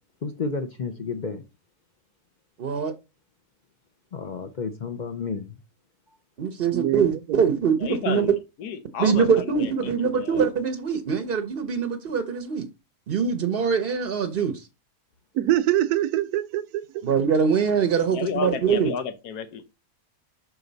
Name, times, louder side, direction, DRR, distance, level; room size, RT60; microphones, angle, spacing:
voice 1, 0.2-1.4 4.1-5.6, left 4 dB, 55° left, 0.5 m, -31 dB
voice 2, 2.6-2.9 6.4-8.3 9.0-12.6 13.1-14.7 17.0-18.9, right 6 dB, 50° right, 0.7 m, -23 dB
voice 3, 6.7-7.4 15.3-16.8, right 13 dB, 80° right, 1.0 m, -24 dB
voice 4, 7.8-8.3 8.6-10.4 18.1-19.6, left 6 dB, 90° left, 1.4 m, -32 dB
6.1 x 5.0 x 3.9 m
omnidirectional pair, 1.6 m